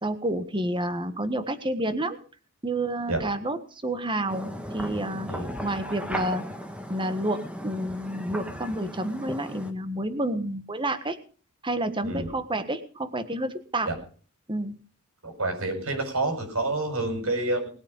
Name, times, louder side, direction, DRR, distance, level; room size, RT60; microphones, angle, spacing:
voice 1, 0.0-2.2 2.6-5.3 5.6-6.4 6.9-11.2 11.6-13.9 14.5-14.7, right 1 dB, 20° right, 11 dB, 1.4 m, -29 dB
sound 1, 4.3-9.7, equal, 5° right, 1.5 m, -36 dB
voice 2, 15.2-17.7, right 2 dB, 70° right, 5 dB, 6.4 m, -28 dB
20.5 x 8.8 x 5.5 m, 0.40 s
head